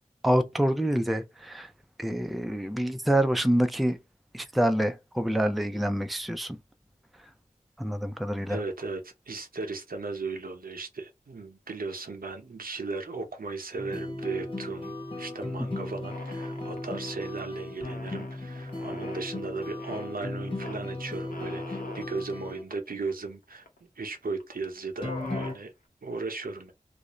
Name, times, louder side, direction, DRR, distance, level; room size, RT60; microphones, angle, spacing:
voice 1, 0.2-1.7 2.0-4.0 4.3-6.6 7.8-8.6, equal, ahead, 0.4 m, -26 dB
voice 2, 8.5-23.7 24.0-25.7 26.0-26.7, right 3 dB, 85° right, 0.7 m, -36 dB
sound 1, 13.8-22.6 25.0-25.5, left 2 dB, 35° left, 1.0 m, -36 dB
sound 2, 16.1-17.4 17.8-19.3 19.8-20.1 20.6-20.8 21.3-22.1 22.7-22.8 23.0-23.8 24.4-24.6 24.9-25.6, left 2 dB, 80° left, 0.7 m, -44 dB
2.5 x 2.0 x 2.9 m
wide cardioid pair, 45°, 15 cm